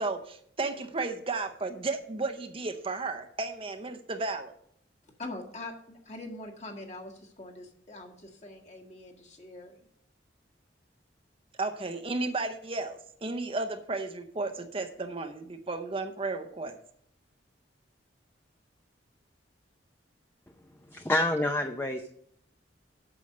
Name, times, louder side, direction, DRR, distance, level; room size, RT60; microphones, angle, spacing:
voice 1, 0.0-4.5 11.6-16.8, right 3 dB, 30° right, 0.7 m, -33 dB
voice 2, 5.2-9.8, left 2 dB, 40° left, 1.6 m, -43 dB
voice 3, 20.9-22.1, left 1 dB, 15° left, 0.5 m, -27 dB
8.6 x 6.3 x 6.4 m
head